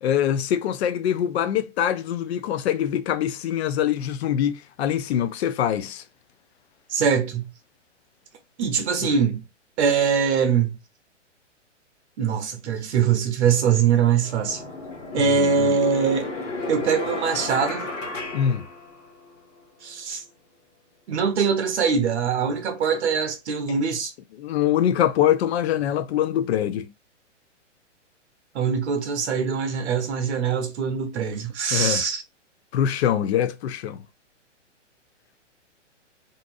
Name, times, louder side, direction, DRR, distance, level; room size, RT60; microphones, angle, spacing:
voice 1, 0.0-6.0 9.0-9.1 15.2-15.8 18.3-18.7 24.3-26.9 31.7-32.0 32.7-34.0, left 10 dB, 60° left, 0.5 m, -24 dB
voice 2, 6.9-7.4 8.6-9.4 9.8-10.8 12.2-14.6 15.1-16.3 16.7-17.8 19.8-20.2 21.1-24.1 28.5-32.2, right 6 dB, 65° right, 0.7 m, -22 dB
sound 1, 13.5-13.6 14.2-19.4, left 3 dB, 85° left, 1.3 m, -33 dB
2.7 x 2.5 x 2.5 m
hypercardioid pair, 125°, 37 cm